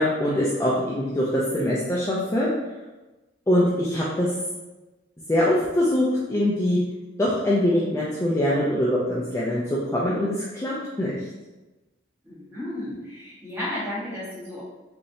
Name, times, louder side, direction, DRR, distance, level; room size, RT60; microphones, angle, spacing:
voice 1, 0.0-2.5 3.5-4.3 5.3-6.8 7.2-9.6 9.9-11.2, left 1 dB, 15° left, -7 dB, 0.4 m, -23 dB
voice 2, 12.2-14.6, left 1 dB, 15° right, -10 dB, 1.2 m, -33 dB
3.1 x 2.6 x 2.7 m, 1.1 s
head